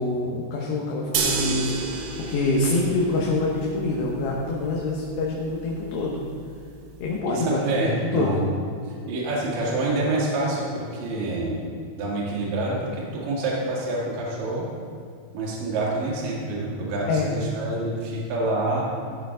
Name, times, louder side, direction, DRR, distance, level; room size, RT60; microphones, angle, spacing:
voice 1, 0.0-6.2 7.0-7.8 8.1-8.4 17.1-17.3, left 2 dB, 75° left, -3 dB, 3.0 m, -26 dB
sound 1, 1.1-7.2, right 5 dB, 80° right, 2.8 m, -32 dB
voice 2, 7.3-8.4 9.1-11.5 12.0-14.7 15.3-18.8, right 2 dB, 60° right, -4 dB, 3.2 m, -27 dB
13.5 x 7.3 x 3.8 m, 2.3 s
omnidirectional pair, 5.1 m